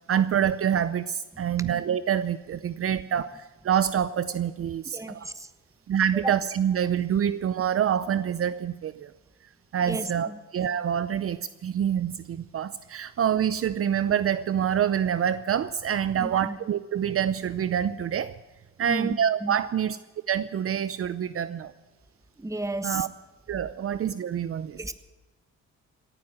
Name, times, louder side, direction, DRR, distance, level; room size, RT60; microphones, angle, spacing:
voice 1, 0.1-5.3 5.9-9.1 9.7-18.3 18.8-20.0 20.3-21.7 22.8-23.1 23.5-24.8, right 9 dB, 50° right, 14 dB, 0.7 m, -26 dB
voice 2, 1.3-1.7 4.9-5.5 6.1-6.4 9.8-10.4 16.1-16.6 18.8-19.6 22.4-23.1 24.8-24.9, right 2 dB, 10° right, 11 dB, 1.2 m, -33 dB
17.5 x 9.9 x 7.5 m, 1.2 s
cardioid pair, 90°, 30 cm